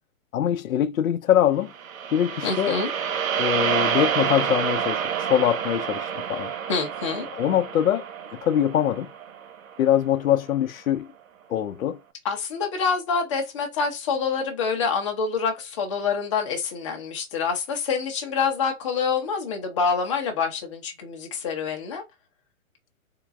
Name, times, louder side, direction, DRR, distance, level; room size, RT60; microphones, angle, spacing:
voice 1, 0.3-1.7 2.1-2.8 3.4-6.5 7.3-8.0 8.4-9.1 9.8-11.1 11.5-12.0, left 10 dB, 75° left, 0.6 m, -23 dB
sound 1, 1.7-10.0, right 8 dB, 70° right, 0.8 m, -28 dB
voice 2, 2.4-2.9 6.7-7.3 12.2-22.0, left 5 dB, 20° left, 0.7 m, -26 dB
3.8 x 2.0 x 3.5 m
hypercardioid pair, 165°, 42 cm